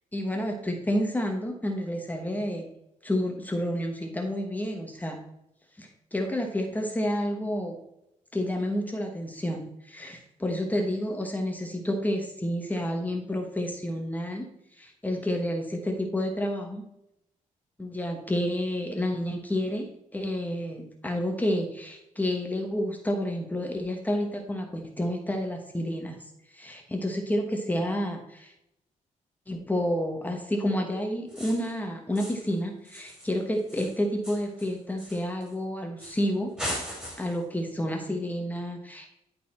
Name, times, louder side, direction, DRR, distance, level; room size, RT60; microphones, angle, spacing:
voice 1, 0.1-2.7 3.0-5.2 5.8-7.8 8.3-14.5 14.8-16.8 17.8-19.9 20.1-26.2 26.5-28.5 29.5-36.5 36.8-39.1, left 1 dB, 10° left, 3 dB, 1.1 m, -30 dB
sound 1, 31.3-31.8 32.1-32.5 32.8-35.5 36.0-36.3 36.6-37.4, equal, 5° right, 2.7 m, -39 dB
11.0 x 4.1 x 4.2 m, 0.83 s
cardioid pair, 135°, 14 cm